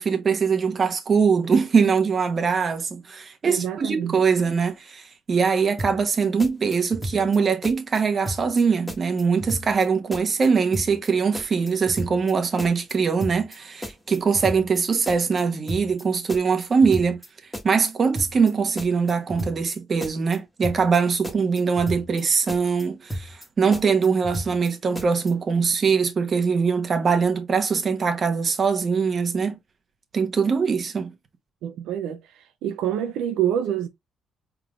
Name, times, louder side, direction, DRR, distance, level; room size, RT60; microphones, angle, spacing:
voice 1, 0.0-17.2 17.6-29.6 30.1-31.1, right 5 dB, 45° right, 1.3 m, -22 dB
voice 2, 3.5-4.2 31.6-32.2 32.6-33.9, right 10 dB, 90° right, 0.5 m, -26 dB
sound 1, 5.8-6.1 6.4-7.4 7.6-8.0 8.3-8.6 8.9-9.9 10.1-10.5 10.7-11.1 11.3-12.3 12.6-12.9 13.2-13.6 13.8-14.8 15.1-15.4 15.7-16.0 16.3-17.3 17.5-17.9 18.2-18.5 18.8-19.7 20.0-20.4 20.6-21.0 21.2-22.2 22.5-22.8 23.1-23.5 23.7-24.7 25.0-25.3, equal, 5° left, 1.4 m, -33 dB
4.8 x 3.7 x 2.3 m
cardioid pair, 90°, 0 cm